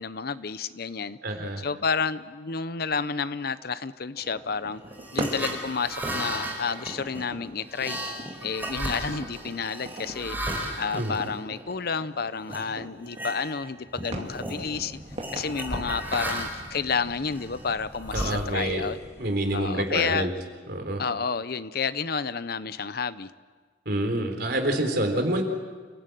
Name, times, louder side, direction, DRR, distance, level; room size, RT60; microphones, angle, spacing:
voice 1, 0.0-1.2 1.6-4.8 5.1-8.0 8.4-15.0 15.3-19.0 19.5-20.3 21.0-23.3, left 5 dB, 55° left, 14 dB, 0.8 m, -30 dB
voice 2, 1.2-1.6 10.9-11.1 18.1-18.9 19.2-20.3 20.7-21.0 23.9-25.4, right 1 dB, 60° right, 5 dB, 3.8 m, -27 dB
sound 1, 4.1-16.5, right 1 dB, 35° right, 2.4 m, -41 dB
sound 2, 4.9-12.0 12.5-12.7 13.0-13.7 13.9-14.6 15.2-16.7 17.3-18.9, right 1 dB, 10° right, 4.6 m, -34 dB
sound 3, 14.5-20.4, equal, 15° left, 2.6 m, -47 dB
28.5 x 16.5 x 9.3 m, 1.5 s
head